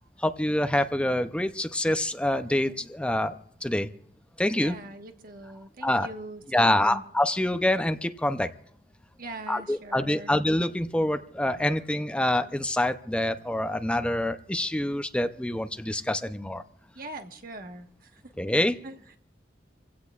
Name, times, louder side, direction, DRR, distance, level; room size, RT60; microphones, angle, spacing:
voice 1, 0.2-3.9 4.4-4.8 5.8-6.1 6.5-8.5 9.5-16.6 18.4-18.7, left 1 dB, 5° left, 9 dB, 0.5 m, -26 dB
voice 2, 4.6-7.0 9.2-10.3 16.9-19.2, right 1 dB, 50° right, 5 dB, 1.4 m, -42 dB
27.0 x 16.5 x 2.4 m, 0.65 s
head